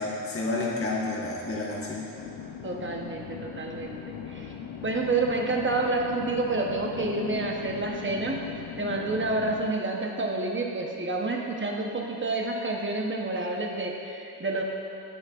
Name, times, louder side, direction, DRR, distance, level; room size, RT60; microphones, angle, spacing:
voice 1, 0.0-2.1, left 2 dB, 30° left, -4 dB, 1.2 m, -30 dB
sound 1, 2.2-9.7, left 7 dB, 90° left, 0.6 m, -39 dB
voice 2, 2.6-4.5 4.8-8.4 8.8-14.6, right 3 dB, 30° right, 0 dB, 0.8 m, -29 dB
16.5 x 6.3 x 2.4 m, 2.9 s
wide cardioid pair, 150°, 42 cm